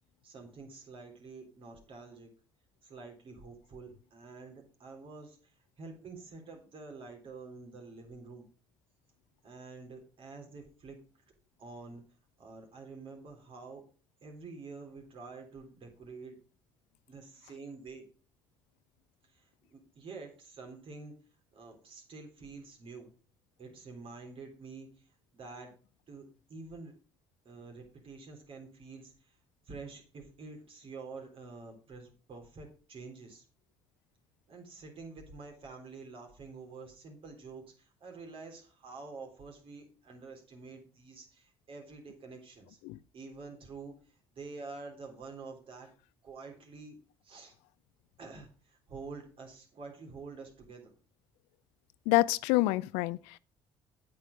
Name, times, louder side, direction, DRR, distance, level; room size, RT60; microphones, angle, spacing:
voice 1, 0.2-2.3 2.8-8.5 9.4-11.0 11.6-12.0 12.4-13.8 14.2-16.4 17.1-18.0 19.2-21.1 21.5-23.1 23.6-24.9 25.3-25.7 26.1-26.2 26.5-26.9 27.5-29.4 29.7-33.4 34.5-42.8 43.1-45.9 46.2-47.0 47.2-47.5 48.2-50.9, right 4 dB, 55° right, 3.6 m, -48 dB
voice 2, 52.1-53.4, left 19 dB, 85° left, 0.4 m, -27 dB
8.5 x 7.9 x 5.2 m
supercardioid pair, 65°, 11 cm